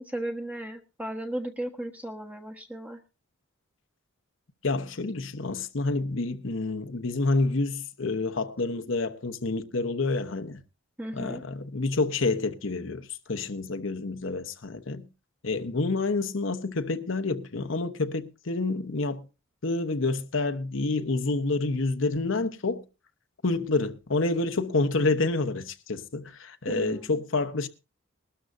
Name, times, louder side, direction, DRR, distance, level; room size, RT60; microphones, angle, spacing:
voice 1, 0.0-3.0 11.0-11.4 26.7-27.2, right 1 dB, 10° right, 1.2 m, -35 dB
voice 2, 4.6-10.6 11.1-15.0 15.4-19.3 19.6-22.8 23.4-27.7, left 3 dB, 70° left, 1.0 m, -28 dB
21.0 x 12.5 x 2.6 m
head